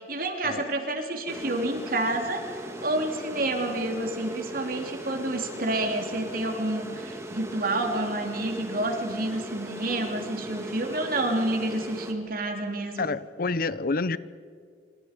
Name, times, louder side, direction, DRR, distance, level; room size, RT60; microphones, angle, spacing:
voice 1, 0.0-2.5 2.8-13.0, right 1 dB, 55° right, 3 dB, 3.1 m, -29 dB
sound 1, 1.3-12.1, right 1 dB, 15° right, 2.1 m, -39 dB
voice 2, 13.0-14.2, left 3 dB, 55° left, 16 dB, 0.7 m, -28 dB
27.5 x 26.0 x 5.2 m, 2.1 s
head